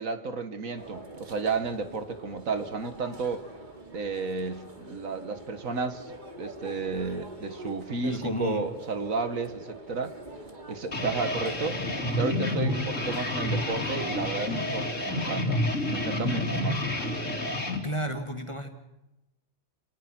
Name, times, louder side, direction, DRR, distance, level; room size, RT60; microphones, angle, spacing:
voice 1, 0.0-3.4 3.9-10.2 10.7-11.8 12.2-16.8, right 4 dB, 70° right, 1.9 m, -32 dB
sound 1, 0.8-15.1, right 1 dB, 35° right, 2.7 m, -45 dB
voice 2, 8.0-8.7 16.5-16.6 17.8-18.8, equal, 20° left, 2.1 m, -32 dB
sound 2, 10.9-17.8, left 1 dB, 65° left, 3.1 m, -29 dB
29.0 x 20.0 x 6.1 m
omnidirectional pair, 1.4 m